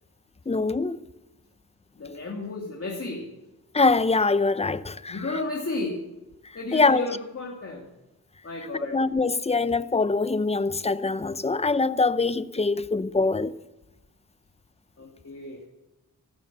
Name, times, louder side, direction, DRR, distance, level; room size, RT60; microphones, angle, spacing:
voice 1, 0.5-1.0 3.7-5.4 6.7-7.1 8.9-13.5, left 3 dB, 20° left, 0.7 m, -23 dB
voice 2, 2.0-3.3 5.1-6.1 6.5-7.9 8.4-9.0 15.0-15.6, left 2 dB, 40° left, 2.6 m, -33 dB
14.5 x 12.5 x 6.9 m
cardioid pair, 65°, 35 cm